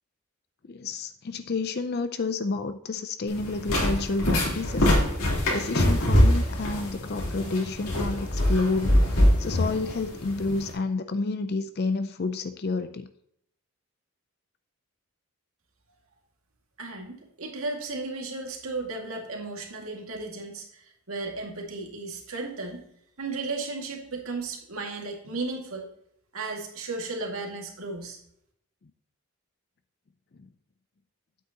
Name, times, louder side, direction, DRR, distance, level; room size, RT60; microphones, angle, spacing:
voice 1, 0.7-4.9 5.5-13.1, left 3 dB, 45° left, 10 dB, 0.5 m, -30 dB
sound 1, 3.3-10.7, left 1 dB, 80° left, 3.5 m, -23 dB
voice 2, 16.8-22.8 23.2-25.9 26.3-28.2, right 3 dB, 75° right, 1 dB, 2.1 m, -35 dB
9.4 x 8.3 x 2.9 m, 0.71 s
head